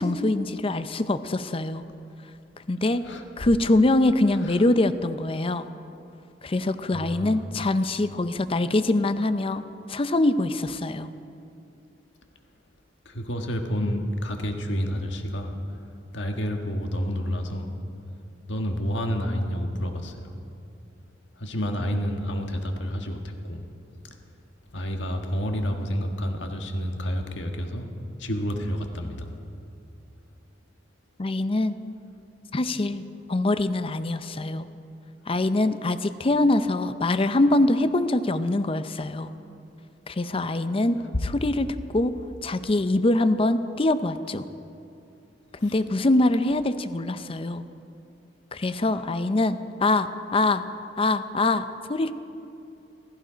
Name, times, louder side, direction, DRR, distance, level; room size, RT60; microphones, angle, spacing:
voice 1, 0.0-1.8 2.7-3.0 3.4-5.7 6.4-9.6 9.9-11.1 31.2-31.8 32.5-33.0 33.3-34.7 35.3-39.3 40.1-42.1 42.4-44.5 45.6-47.6 48.5-50.6 51.0-52.1, left 2 dB, 30° left, 12 dB, 0.5 m, -24 dB
voice 2, 6.9-7.4 13.0-15.5 16.1-17.7 18.5-20.3 21.4-23.6 24.7-27.9 28.2-29.3, equal, 80° left, 4 dB, 1.5 m, -29 dB
15.5 x 15.0 x 5.1 m, 2.6 s
head